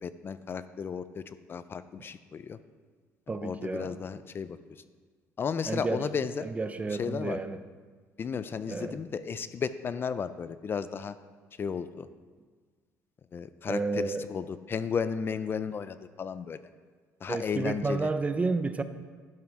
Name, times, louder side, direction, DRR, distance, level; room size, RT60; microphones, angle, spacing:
voice 1, 0.0-2.6 3.4-4.6 5.4-6.4 7.0-7.4 8.2-11.1 11.6-12.1 13.3-16.6 17.2-18.1, left 6 dB, 35° left, 13 dB, 0.4 m, -34 dB
voice 2, 3.3-4.0 5.7-6.0 6.4-7.6 8.7-9.0 13.7-14.3 17.3-18.8, right 3 dB, 20° right, 11 dB, 0.6 m, -31 dB
12.0 x 5.9 x 4.6 m, 1.5 s
cardioid pair, 95°, 6 cm